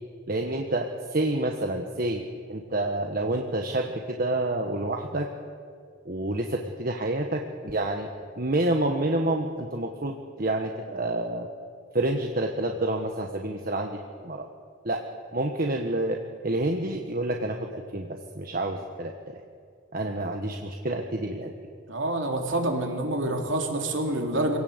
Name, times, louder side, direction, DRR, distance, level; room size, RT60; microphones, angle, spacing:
voice 1, 0.3-2.2 2.5-5.3 6.0-8.1 8.4-11.5 11.9-14.0 14.2-14.5 14.8-15.0 15.3-16.2 16.4-19.4 19.9-21.5, right 1 dB, 45° right, 3 dB, 1.4 m, -28 dB
voice 2, 21.9-24.6, right 1 dB, 60° right, 2 dB, 3.3 m, -27 dB
26.5 x 17.5 x 8.1 m, 2.2 s
head